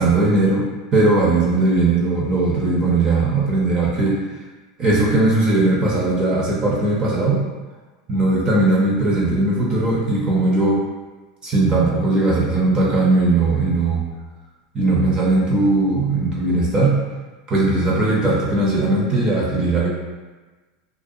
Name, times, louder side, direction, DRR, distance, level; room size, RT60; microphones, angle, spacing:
voice 1, 0.0-4.1 4.8-7.4 8.1-10.8 11.4-14.0 14.7-16.9 17.5-19.9, right 2 dB, 25° right, -5 dB, 0.6 m, -18 dB
2.4 x 2.2 x 2.6 m, 1.3 s
supercardioid pair, 120°, 3 cm